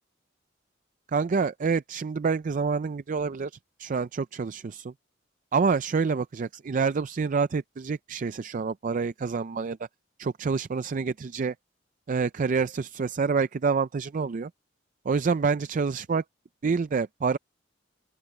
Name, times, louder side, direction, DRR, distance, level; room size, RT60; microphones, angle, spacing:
voice 1, 1.1-3.5 3.8-4.9 5.5-9.8 10.2-11.5 12.1-14.5 15.1-16.2 16.6-17.4, right 5 dB, 45° right, 0.4 m, -27 dB
open air
head